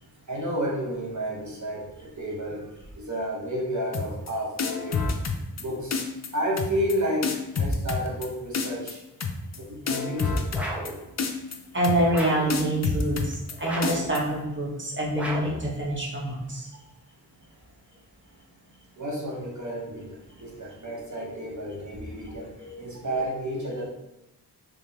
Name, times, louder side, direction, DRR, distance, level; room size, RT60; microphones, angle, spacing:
voice 1, 0.3-2.7 3.0-5.0 5.6-6.0 6.3-9.0 9.6-10.5 19.0-22.5 22.8-23.9, equal, 45° right, -4 dB, 0.9 m, -31 dB
sound 1, 3.9-4.3 4.6-5.6 5.9-6.3 6.6-6.9 7.2-8.3 8.5-8.9 9.2-9.6 9.9-10.9 11.2-11.6 11.8-12.2 12.5-13.5 13.8-14.2, left 4 dB, 40° left, 0.5 m, -28 dB
sound 2, 10.5-11.0 12.1-12.6 13.6-14.1 15.1-15.6, right 1 dB, 5° right, 0.8 m, -33 dB
voice 2, 11.7-16.7 22.6-22.8, right 1 dB, 30° right, -4 dB, 1.2 m, -26 dB
3.4 x 3.3 x 2.8 m, 0.92 s
cardioid pair, 50°, 41 cm